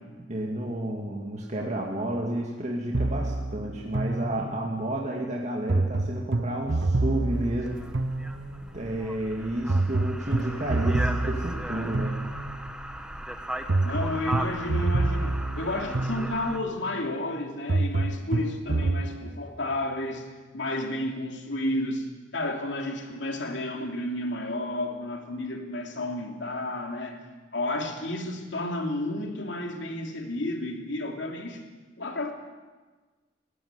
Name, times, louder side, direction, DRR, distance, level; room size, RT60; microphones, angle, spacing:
voice 1, 0.1-7.9 8.7-12.2, right 1 dB, 40° right, -1 dB, 2.3 m, -31 dB
sound 1, 2.9-4.8 5.7-8.8 9.7-12.8 13.7-16.7 17.7-19.1, right 2 dB, 75° right, 1.0 m, -28 dB
sound 2, 7.3-16.6, right 1 dB, 5° right, 1.3 m, -37 dB
voice 2, 13.8-20.3 20.5-22.1 22.3-27.2 27.5-31.6 32.0-32.3, left 1 dB, 70° left, 3 dB, 3.1 m, -31 dB
19.5 x 17.0 x 9.7 m, 1.3 s
head